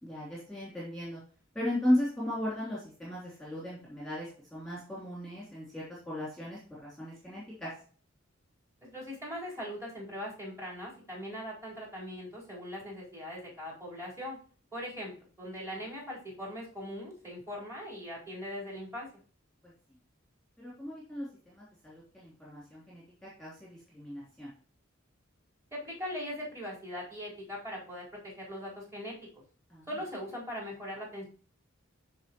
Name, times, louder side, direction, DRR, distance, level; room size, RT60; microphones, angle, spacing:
voice 1, 0.0-1.2 1.5-7.7 20.6-24.5 29.7-29.9, left 1 dB, ahead, -7 dB, 3.2 m, -36 dB
voice 2, 8.8-14.4 14.7-15.1 15.4-19.1 25.7-29.1 29.9-31.2, equal, 15° right, -5 dB, 4.4 m, -40 dB
13.5 x 4.9 x 3.1 m, 0.41 s
head